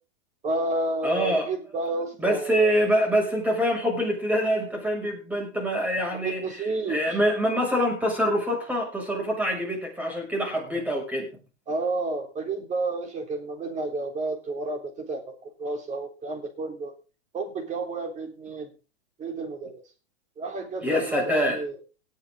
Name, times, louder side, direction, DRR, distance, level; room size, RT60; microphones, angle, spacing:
voice 1, 0.4-2.7 6.1-7.2 11.7-16.9 17.3-18.7 19.2-19.8 20.4-21.7, right 2 dB, 20° right, 5 dB, 3.7 m, -31 dB
voice 2, 1.0-1.5 2.2-11.3 20.8-21.6, equal, 5° right, 1 dB, 6.6 m, -25 dB
18.5 x 9.3 x 3.9 m, 0.33 s
hypercardioid pair, 140°, 34 cm